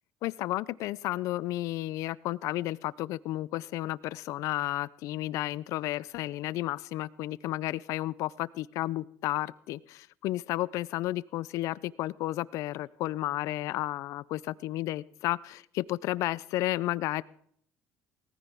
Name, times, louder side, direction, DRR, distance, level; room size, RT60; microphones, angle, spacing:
voice 1, 0.2-17.2, left 16 dB, 65° left, 20 dB, 0.4 m, -32 dB
18.5 x 14.0 x 3.5 m, 0.64 s
cardioid pair, 165°, 6 cm